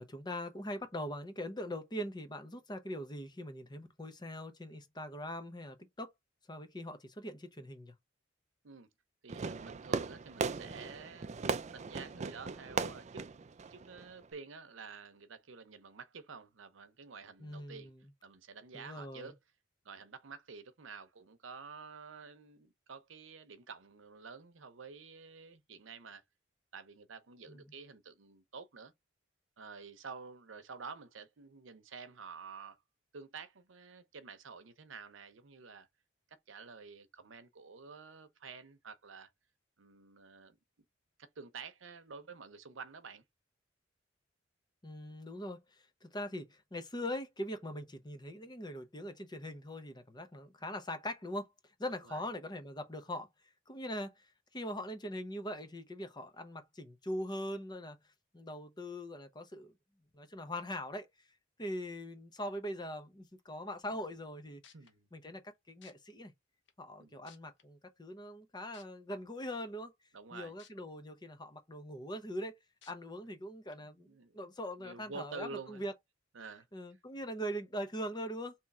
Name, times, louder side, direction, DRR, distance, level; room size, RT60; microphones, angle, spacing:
voice 1, 0.0-6.1 6.5-7.9 17.4-18.0 18.7-19.3 27.5-27.6 44.8-51.5 51.8-53.3 53.7-54.3 54.5-58.0 58.3-59.7 60.1-61.1 61.6-64.6 65.1-66.3 66.8-69.9 70.3-72.6 72.9-74.1 74.3-75.9 76.7-78.5, equal, 20° left, 0.8 m, -42 dB
voice 2, 9.2-13.3 13.7-17.9 18.2-19.4 19.8-26.2 26.7-28.9 29.6-32.8 33.1-35.9 36.3-39.3 39.8-40.6 41.2-43.2 51.9-52.2 64.7-65.1 67.0-67.3 70.1-70.6 73.8-74.4 74.8-75.9 76.3-76.7, right 5 dB, 90° right, 0.8 m, -50 dB
Fireworks, 9.3-14.3, right 4 dB, 35° right, 0.4 m, -38 dB
sound 1, 64.6-64.9 65.8-65.9 66.7-66.8 67.3-67.6 68.7-68.8 70.6-70.7 71.2-71.3 72.8-72.9 73.7-73.8, left 8 dB, 65° left, 0.9 m, -58 dB
3.6 x 3.0 x 4.1 m
head